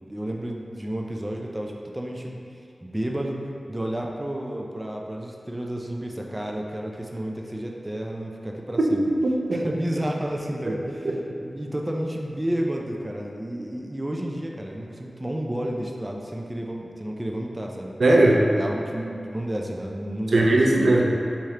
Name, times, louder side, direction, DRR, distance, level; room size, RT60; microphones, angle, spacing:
voice 1, 0.1-2.4 2.8-3.4 3.7-9.0 9.5-11.0 11.4-17.9 18.6-20.5, right 1 dB, 20° right, 0 dB, 0.4 m, -31 dB
voice 2, 9.2-9.6 10.7-10.8 11.0-11.4 18.0-18.4 20.3-21.0, right 2 dB, 80° right, -1 dB, 0.5 m, -19 dB
4.2 x 3.2 x 3.6 m, 2.5 s
wide cardioid pair, 80°, 0 cm